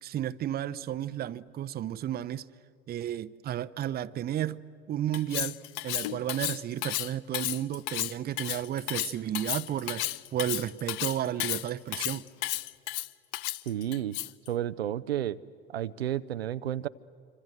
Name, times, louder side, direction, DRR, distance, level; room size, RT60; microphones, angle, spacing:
voice 1, 0.0-2.5 2.9-4.6 4.9-12.3, right 11 dB, 30° right, 0.7 m, -33 dB
Cutlery silverware, 5.1-14.5, left 16 dB, 55° left, 0.6 m, -33 dB
voice 2, 13.7-14.2 14.5-15.4 15.7-16.9, right 11 dB, 80° right, 0.6 m, -31 dB
27.0 x 25.5 x 7.7 m
figure-of-eight pair, 70°, 31 cm